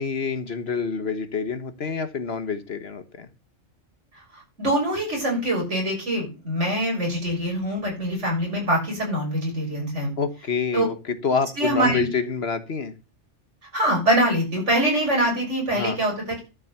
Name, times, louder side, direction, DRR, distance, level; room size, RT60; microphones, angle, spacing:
voice 1, 0.0-3.3 10.2-12.9 15.7-16.0, left 5 dB, 55° left, 10 dB, 1.3 m, -27 dB
voice 2, 4.3-10.1 10.7-10.8 11.6-12.1 13.7-16.4, right 1 dB, 65° right, -1 dB, 6.7 m, -24 dB
12.0 x 6.4 x 6.7 m, 0.31 s
omnidirectional pair, 1.3 m